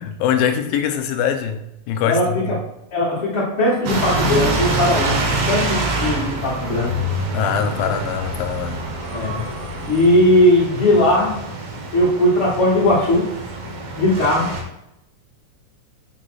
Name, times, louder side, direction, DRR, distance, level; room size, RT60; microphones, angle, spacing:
voice 1, 0.0-2.6 7.3-8.8, left 8 dB, 85° left, 8 dB, 2.5 m, -23 dB
voice 2, 2.0-2.6 2.9-7.0 9.1-9.5 9.9-11.3 11.9-13.3 14.0-14.5, left 1 dB, 40° left, -9 dB, 2.5 m, -18 dB
sound 1, 3.9-14.6, right 2 dB, 90° right, 3.5 m, -25 dB
7.6 x 3.9 x 6.3 m, 0.83 s
omnidirectional pair, 4.1 m